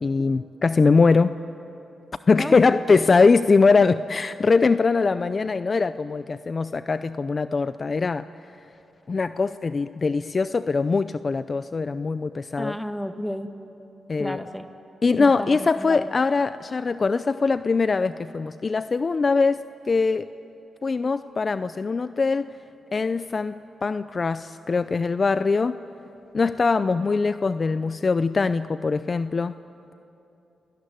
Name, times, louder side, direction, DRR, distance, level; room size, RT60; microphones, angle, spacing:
voice 1, 0.0-1.3 2.3-8.3 9.1-12.7 14.1-14.4 15.0-20.3 20.8-22.5 22.9-23.5 23.8-25.8 26.3-29.5, left 4 dB, 40° left, 13 dB, 0.5 m, -22 dB
voice 2, 2.4-2.8 12.6-13.5 14.2-14.7 15.2-16.1, equal, 5° left, 7 dB, 1.8 m, -32 dB
29.5 x 18.5 x 9.3 m, 2.9 s
cardioid pair, 80°, 0 cm